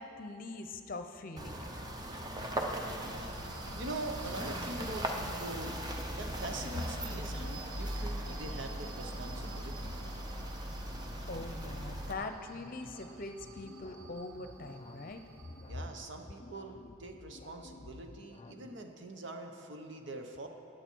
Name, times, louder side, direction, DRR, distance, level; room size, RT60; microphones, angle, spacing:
voice 1, 0.0-1.7 11.3-15.2, left 2 dB, 40° left, 6 dB, 0.7 m, -42 dB
sound 1, 1.4-12.1, right 1 dB, 20° right, 0.7 m, -39 dB
sound 2, 1.8-18.8, left 2 dB, 25° left, 0.3 m, -54 dB
sound 3, 2.8-16.2, right 4 dB, 85° right, 0.8 m, -53 dB
voice 2, 3.0-3.4 3.8-5.7 6.2-9.9 15.7-20.5, right 2 dB, 60° right, 4 dB, 1.0 m, -43 dB
15.5 x 9.6 x 4.6 m, 2.7 s
head